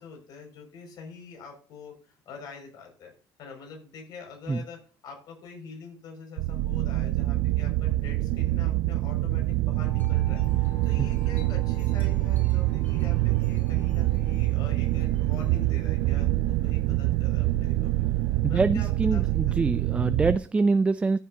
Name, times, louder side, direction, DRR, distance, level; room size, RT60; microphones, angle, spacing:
voice 1, 0.0-3.1 3.4-18.2 18.5-19.8, left 5 dB, 60° left, 5.8 m, -45 dB
sound 1, 6.4-20.4, right 17 dB, 75° right, 0.4 m, -25 dB
Wind chime, 9.7-16.2, left 3 dB, 20° left, 4.2 m, -52 dB
voice 2, 18.4-21.2, right 3 dB, 15° right, 0.4 m, -25 dB
14.5 x 8.2 x 2.8 m
cardioid pair, 120°, 8 cm